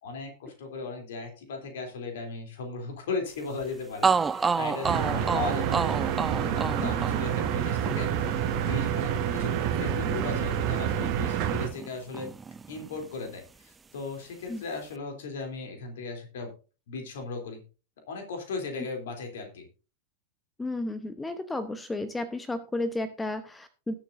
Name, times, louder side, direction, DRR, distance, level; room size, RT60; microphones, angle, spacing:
voice 1, 0.0-5.9 6.4-12.3 12.7-16.5 16.9-17.6 18.1-19.7, left 4 dB, 60° left, 4 dB, 3.2 m, -37 dB
sound 1, 3.6-3.7 4.0-11.9 12.1-13.3, right 5 dB, 15° right, 0.4 m, -31 dB
sound 2, 4.8-11.7, right 9 dB, 45° right, 1.8 m, -28 dB
voice 2, 20.6-23.9, left 2 dB, 10° left, 12 dB, 0.9 m, -33 dB
20.5 x 7.0 x 2.6 m, 0.33 s
figure-of-eight pair, 90°, 0 cm